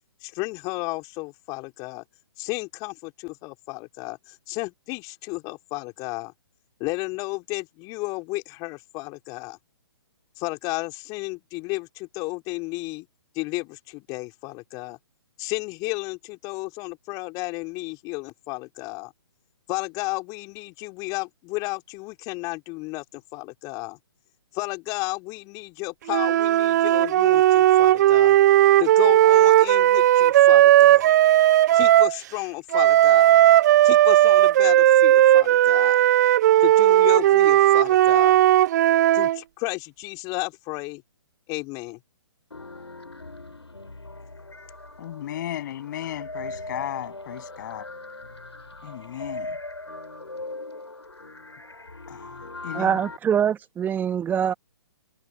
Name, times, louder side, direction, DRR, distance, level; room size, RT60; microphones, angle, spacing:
voice 1, 0.2-2.0 2.4-6.3 6.8-9.6 10.4-13.1 13.3-15.0 15.4-19.1 19.7-24.0 24.5-28.4 28.8-31.1 31.7-33.4 33.8-36.0 36.6-38.4 39.1-41.0 41.5-42.0, left 25 dB, 25° left, 3.4 m, -33 dB
sound 1, 26.1-32.2 32.7-39.4, right 13 dB, 40° right, 0.8 m, -16 dB
sound 2, 42.5-53.2, left 2 dB, 90° left, 3.9 m, -39 dB
voice 2, 45.0-47.9 48.8-49.6 52.1-53.0, left 12 dB, 45° left, 7.6 m, -35 dB
voice 3, 52.7-54.5, right 8 dB, 15° right, 1.4 m, -24 dB
figure-of-eight pair, 130°, 14 cm